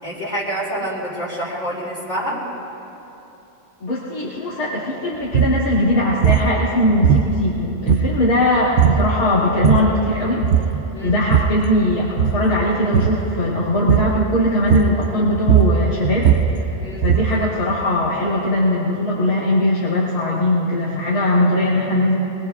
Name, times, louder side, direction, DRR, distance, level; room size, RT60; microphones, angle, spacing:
voice 1, 0.0-2.4 10.9-11.2 16.8-17.1, right 1 dB, 25° left, -12 dB, 3.8 m, -27 dB
voice 2, 3.8-10.4 11.0-16.3 17.0-22.2, left 1 dB, 70° left, -10 dB, 3.0 m, -20 dB
sound 1, 5.2-5.6 6.2-6.5 7.0-7.5 7.9-8.4 8.8-9.1 9.5-10.0 10.4-10.8 11.1-11.6 12.1-12.5 12.9-13.2 13.9-14.2 14.7-15.1 15.3-17.4, right 8 dB, 60° right, 0.8 m, -17 dB
24.0 x 22.0 x 2.4 m, 3.0 s
omnidirectional pair, 1.6 m